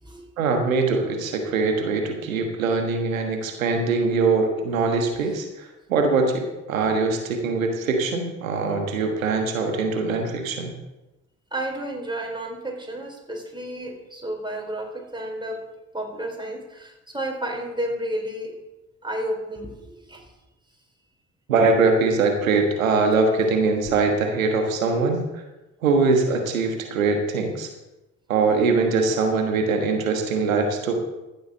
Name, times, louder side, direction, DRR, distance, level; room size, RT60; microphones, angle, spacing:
voice 1, 0.4-10.7 21.5-25.2 25.8-27.7 28.3-31.0, right 4 dB, 85° right, 4 dB, 1.4 m, -22 dB
voice 2, 11.5-15.7 15.9-18.6 19.0-20.3 23.9-24.0, right 1 dB, 10° right, 1 dB, 4.0 m, -31 dB
14.5 x 7.1 x 6.4 m, 1.0 s
figure-of-eight pair, 40°, 39 cm